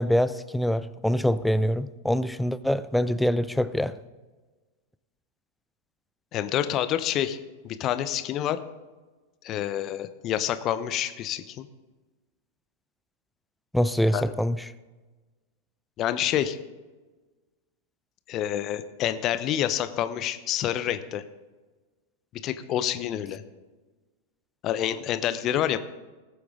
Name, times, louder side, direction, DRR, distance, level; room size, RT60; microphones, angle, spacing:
voice 1, 0.0-4.0 13.7-14.6, equal, ahead, 15 dB, 0.5 m, -24 dB
voice 2, 6.3-7.4 7.6-8.6 9.4-11.7 14.1-14.2 16.0-16.6 18.3-21.2 22.3-23.4 24.6-25.8, left 11 dB, 35° left, 12 dB, 0.8 m, -28 dB
19.5 x 8.2 x 3.7 m, 1.3 s
figure-of-eight pair, 90°, 0 cm